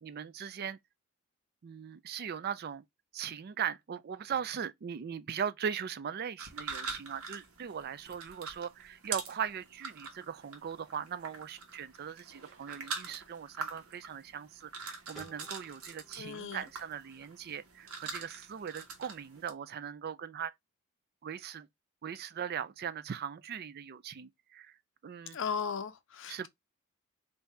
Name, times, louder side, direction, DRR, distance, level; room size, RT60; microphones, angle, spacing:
voice 1, 0.0-0.8 1.6-2.8 3.1-20.5 21.2-21.7 22.0-24.8 25.0-25.4 26.3-26.5, right 8 dB, 45° right, 0.4 m, -39 dB
sound 1, 6.4-19.5, right 5 dB, 85° right, 1.3 m, -44 dB
sound 2, 15.2-18.0, right 1 dB, ahead, 1.2 m, -59 dB
voice 2, 16.2-16.6 25.3-26.5, left 6 dB, 60° left, 0.5 m, -36 dB
3.6 x 2.7 x 4.3 m
head